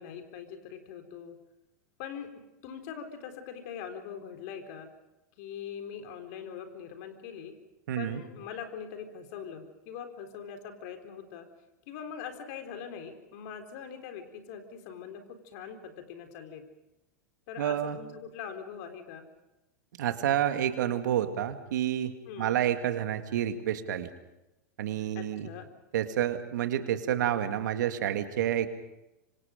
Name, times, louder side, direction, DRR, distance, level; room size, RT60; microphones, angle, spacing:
voice 1, 0.0-1.4 2.0-2.3 2.6-4.9 5.4-7.5 8.0-11.5 11.9-16.6 17.5-19.3 22.3-22.6 25.1-25.7, left 7 dB, 60° left, 6 dB, 3.9 m, -42 dB
voice 2, 7.9-8.2 17.6-18.0 20.0-24.1 24.8-25.5 25.9-28.7, right 10 dB, 70° right, 8 dB, 2.1 m, -29 dB
26.0 x 25.5 x 5.1 m, 0.94 s
hypercardioid pair, 100°, 10 cm